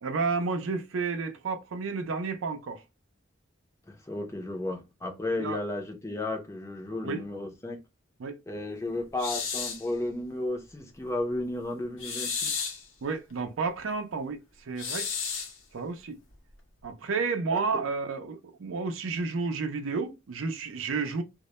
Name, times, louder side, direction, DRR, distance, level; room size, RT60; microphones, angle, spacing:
voice 1, 0.0-2.8 5.4-5.6 7.0-7.2 8.2-8.4 13.0-15.1 15.7-16.2 16.8-21.2, right 4 dB, 85° right, 0.4 m, -31 dB
voice 2, 3.9-7.8 8.5-12.6 17.5-17.6, left 2 dB, 15° left, 0.5 m, -33 dB
sound 1, 9.2-9.9 12.0-12.9 14.8-15.6, left 6 dB, 80° left, 0.7 m, -32 dB
2.1 x 2.0 x 2.9 m
head